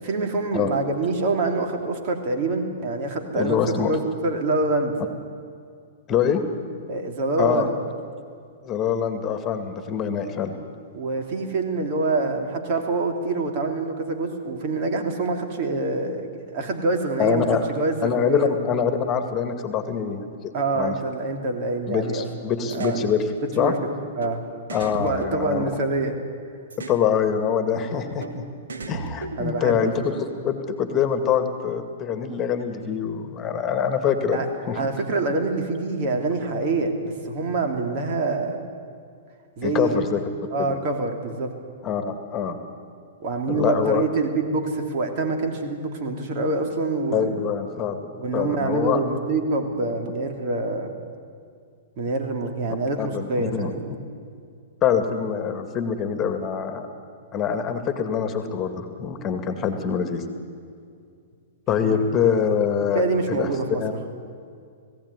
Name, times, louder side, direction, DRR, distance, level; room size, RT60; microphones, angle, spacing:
voice 1, 0.0-4.9 6.9-7.7 10.9-16.3 16.5-18.5 20.5-22.2 22.6-23.0 23.6-23.8 24.2-24.4 25.0-26.2 29.4-30.1 34.3-34.5 34.7-38.6 39.6-40.0 40.5-41.5 43.2-47.3 48.2-50.9 52.0-53.8 61.8-62.0 62.9-64.1, right 3 dB, 50° right, 4 dB, 3.0 m, -26 dB
voice 2, 3.3-3.9 6.1-6.4 7.4-7.7 8.6-10.6 17.2-17.7 18.0-20.9 21.9-23.2 23.6-23.7 24.7-25.6 26.9-28.4 28.9-34.8 39.6-40.2 40.6-40.7 41.8-42.6 43.5-44.0 47.1-49.0 53.0-53.7 54.8-56.9 57.3-60.2 61.7-63.0 63.3-63.5 63.8-63.9, left 7 dB, 30° left, 7 dB, 2.1 m, -24 dB
sound 1, 22.7-23.0 24.2-24.3 24.7-26.1 26.7-27.0 28.2-28.3 28.7-29.8, right 4 dB, 80° right, 1.8 m, -35 dB
19.0 x 16.0 x 9.8 m, 2.3 s
hypercardioid pair, 120°, 0 cm